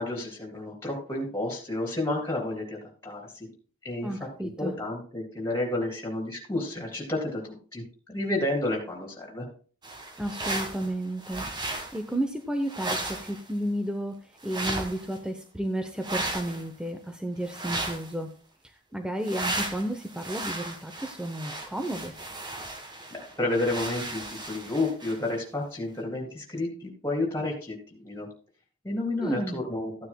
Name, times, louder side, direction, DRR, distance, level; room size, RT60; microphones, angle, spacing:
voice 1, 0.0-3.5 3.8-4.1 4.4-9.5 23.1-28.3 28.8-29.9, left 2 dB, 10° left, 1 dB, 3.1 m, -31 dB
voice 2, 4.0-4.7 10.2-18.3 18.9-22.1 29.2-29.6, right 1 dB, 5° right, 5 dB, 0.7 m, -32 dB
sound 1, 9.8-10.9 11.2-12.0 12.7-13.5 14.4-15.2 16.0-16.6 17.4-18.1 19.2-25.3, right 2 dB, 20° right, 1.5 m, -35 dB
14.5 x 9.6 x 2.3 m, 0.40 s
head